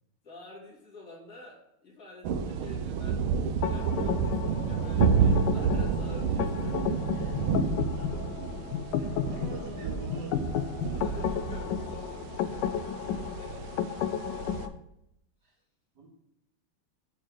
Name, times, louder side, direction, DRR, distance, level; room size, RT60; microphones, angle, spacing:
voice 1, 0.2-6.9 10.9-14.3 14.6-14.7, left 2 dB, 40° left, -5 dB, 3.2 m, -49 dB
sound 1, 2.2-14.7, right 6 dB, 75° right, 1.5 m, -30 dB
sound 2, 3.6-14.7, left 9 dB, 80° left, 1.0 m, -33 dB
voice 2, 7.1-7.5 8.0-8.1 9.0-10.4 13.6-13.8 15.4-15.5 15.9-16.1, right 4 dB, 50° right, -2 dB, 2.5 m, -44 dB
7.2 x 4.4 x 6.6 m, 0.83 s
omnidirectional pair, 2.4 m